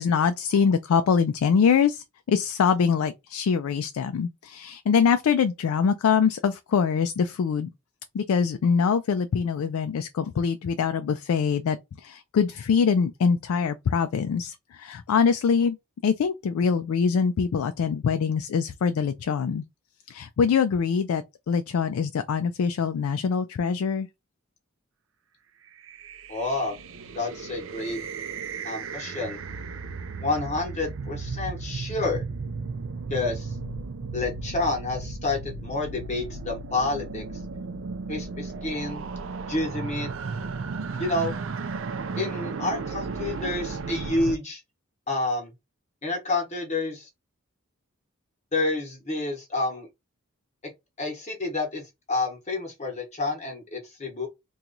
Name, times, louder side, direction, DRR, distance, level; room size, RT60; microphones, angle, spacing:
voice 1, 0.0-7.7 8.1-15.8 16.0-19.6 20.1-24.1, left 6 dB, 85° left, 0.3 m, -24 dB
sound 1, 25.8-44.4, right 4 dB, 60° right, 0.4 m, -35 dB
voice 2, 26.3-26.8 27.1-28.0 28.6-29.4 30.2-32.2 33.1-33.6 34.1-37.2 38.1-39.1 39.5-40.1 41.0-41.4 42.2-44.6 45.1-45.5 46.0-47.1 48.5-49.9 50.6-50.7 51.0-54.3, left 2 dB, 30° left, 0.9 m, -29 dB
2.9 x 2.3 x 3.8 m
head